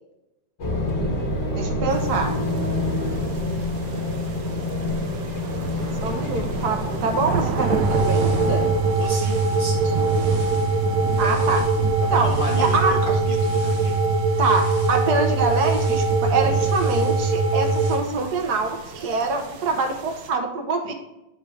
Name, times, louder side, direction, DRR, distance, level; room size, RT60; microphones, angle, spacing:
sound 1, 0.6-8.7, left 1 dB, 70° left, 2.1 m, -27 dB
voice 1, 1.5-2.4 6.0-8.7 11.2-11.6 12.1-12.3 12.6-13.0 14.4-20.9, right 3 dB, 70° right, 5 dB, 1.4 m, -24 dB
sound 2, 1.9-20.3, right 5 dB, 85° right, 1.4 m, -33 dB
voice 2, 5.8-6.2 9.0-9.9 11.2-11.5 12.0-14.0, left 2 dB, 85° left, 1 dB, 0.4 m, -34 dB
sound 3, 7.6-18.0, right 3 dB, 45° right, 0.4 m, -22 dB
8.0 x 4.8 x 3.2 m, 0.96 s
omnidirectional pair, 1.9 m